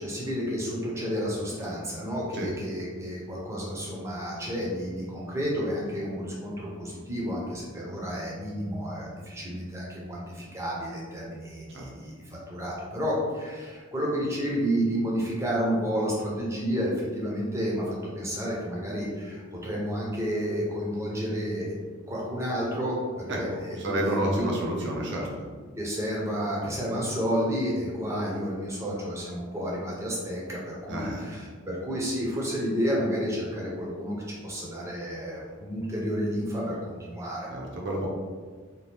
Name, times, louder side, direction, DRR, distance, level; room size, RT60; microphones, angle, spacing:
voice 1, 0.0-21.8 22.1-24.9 25.8-37.5, equal, 15° right, -5 dB, 0.6 m, -31 dB
voice 2, 23.8-25.3 26.6-26.7 30.9-31.2 37.5-38.1, right 1 dB, 55° right, -1 dB, 0.6 m, -30 dB
2.8 x 2.3 x 3.4 m, 1.5 s
head